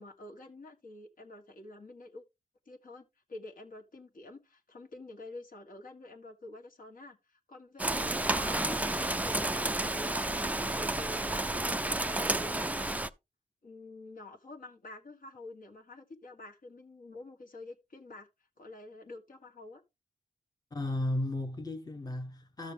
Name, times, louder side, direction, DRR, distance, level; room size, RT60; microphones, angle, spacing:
voice 1, 0.0-2.2 2.7-10.3 10.7-12.8 13.6-18.3 18.6-19.8, left 2 dB, 55° left, 1.7 m, -48 dB
Rain, 7.8-13.1, right 1 dB, 10° right, 0.5 m, -31 dB
voice 2, 20.7-22.7, left 1 dB, 25° left, 1.1 m, -34 dB
12.5 x 6.6 x 3.5 m
cardioid pair, 75°, 17 cm